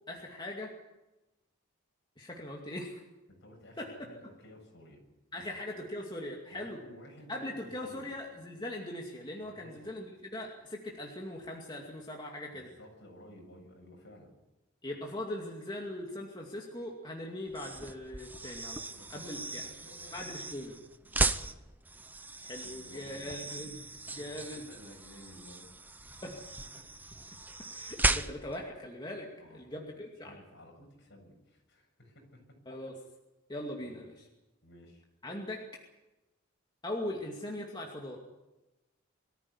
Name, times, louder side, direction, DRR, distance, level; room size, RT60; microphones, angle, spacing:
voice 1, 0.1-0.7 2.2-3.0 3.8-3.9 5.3-6.8 7.3-12.7 14.8-18.8 19.1-19.6 20.1-20.7 22.4-24.6 26.2-26.3 27.7-30.3 32.7-32.9 33.5-34.3 35.2-35.6 36.8-38.2, left 1 dB, 20° left, -1 dB, 2.4 m, -40 dB
voice 2, 3.3-5.0 5.3-5.5 6.5-8.1 9.4-9.9 12.5-14.3 18.9-20.5 21.0-21.5 22.6-23.4 24.0-26.3 26.8-26.9 27.2-27.5 29.4-29.7 30.2-32.4 33.8-34.0 34.6-35.0, left 1 dB, 60° left, 1 dB, 7.3 m, -55 dB
sound 1, 17.5-28.6, right 2 dB, 10° right, 0.7 m, -36 dB
23.5 x 14.0 x 9.8 m, 1.0 s
head